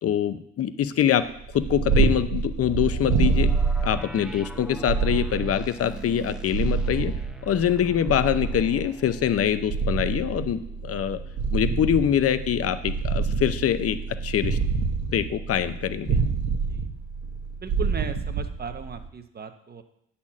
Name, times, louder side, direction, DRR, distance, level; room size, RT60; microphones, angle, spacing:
voice 1, 0.0-1.3 1.5-3.5 3.8-7.1 7.4-11.2 11.5-14.6 15.1-16.2, left 10 dB, 50° left, 12 dB, 0.6 m, -24 dB
Purr, 1.4-19.1, right 5 dB, 75° right, 1.2 m, -27 dB
sound 1, 2.6-12.3 12.7-12.8 13.3-13.5, left 1 dB, 5° right, 0.6 m, -43 dB
voice 2, 16.4-16.9 17.6-19.8, right 5 dB, 30° right, 8 dB, 0.9 m, -37 dB
8.5 x 4.3 x 7.3 m, 0.73 s
cardioid pair, 90°, 30 cm